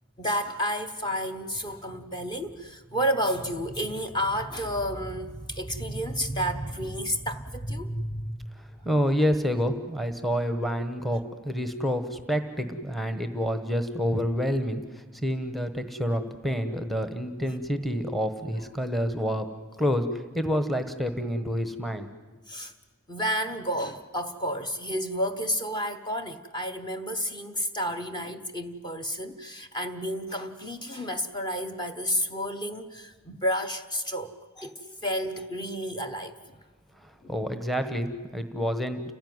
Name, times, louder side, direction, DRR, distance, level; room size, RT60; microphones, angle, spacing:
voice 1, 0.2-8.4 22.5-22.7 23.1-36.6 37.2-37.3, equal, 20° left, 7 dB, 1.1 m, -31 dB
voice 2, 8.8-19.5 19.8-22.1 37.0-39.1, equal, ahead, 8 dB, 1.1 m, -28 dB
29.5 x 16.0 x 9.5 m, 1.3 s
head